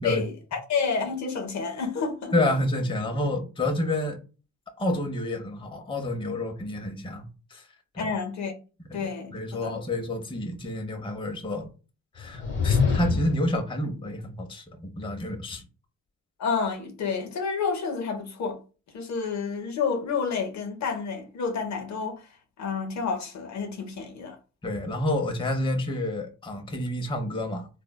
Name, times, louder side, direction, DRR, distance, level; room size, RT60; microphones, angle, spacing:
voice 1, 0.0-2.3 8.0-8.5 8.9-9.8 16.4-18.6 18.9-22.3 22.6-24.4, left 5 dB, 55° left, 0.7 m, -29 dB
voice 2, 2.3-4.2 4.8-7.6 7.9-8.1 8.9-9.0 9.3-11.7 12.1-15.6 24.6-27.8, left 1 dB, 15° left, 0.6 m, -29 dB
sound 1, 12.2-13.5, left 5 dB, 35° left, 0.9 m, -25 dB
3.2 x 2.0 x 2.2 m
supercardioid pair, 70°, 33 cm